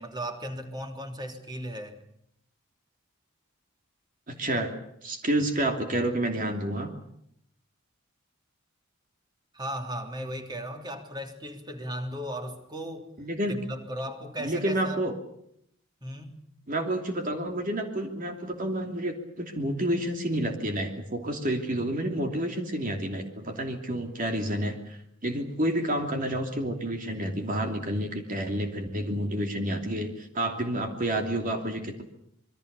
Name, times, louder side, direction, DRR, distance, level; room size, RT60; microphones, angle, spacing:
voice 1, 0.0-1.9 9.5-13.1 13.5-15.0 16.0-16.4, equal, 20° right, 5 dB, 3.3 m, -36 dB
voice 2, 4.3-4.7 5.0-6.9 13.2-13.6 14.4-15.1 16.7-32.0, right 1 dB, 40° right, 4 dB, 2.9 m, -29 dB
27.0 x 22.5 x 6.9 m, 0.73 s
head